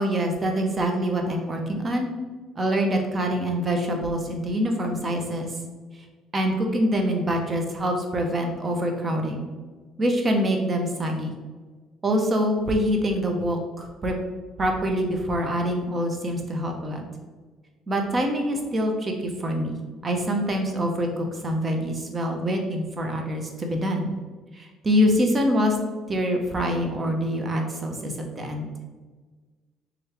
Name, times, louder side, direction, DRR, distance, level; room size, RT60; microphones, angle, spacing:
voice 1, 0.0-2.1 2.5-5.5 6.3-9.5 10.0-11.3 12.0-14.2 14.6-17.0 17.9-24.1 24.5-25.7 26.1-28.7, equal, 30° right, 3 dB, 0.7 m, -25 dB
3.6 x 3.1 x 3.4 m, 1.4 s
cardioid pair, 90°, 0 cm